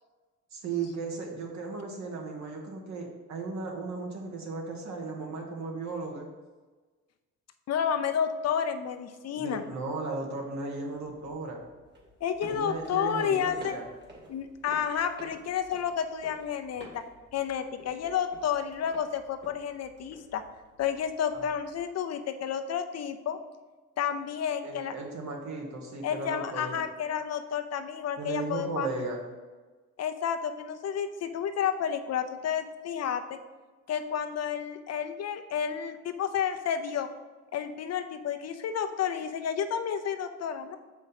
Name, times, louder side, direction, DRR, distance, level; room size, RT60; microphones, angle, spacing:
voice 1, 0.5-6.3 9.4-11.6 12.4-13.8 21.3-21.4 24.6-26.8 28.2-29.2, right 3 dB, 65° right, 1 dB, 1.5 m, -36 dB
voice 2, 7.7-9.6 12.2-13.8 14.3-17.0 17.3-20.4 20.8-23.4 24.0-24.9 26.0-28.9 30.0-33.4 33.9-37.1 37.5-40.8, left 8 dB, 55° left, 8 dB, 0.6 m, -31 dB
sound 1, 10.9-21.8, right 1 dB, 35° right, 1.9 m, -51 dB
6.6 x 5.1 x 4.2 m, 1.3 s
cardioid pair, 90°, 30 cm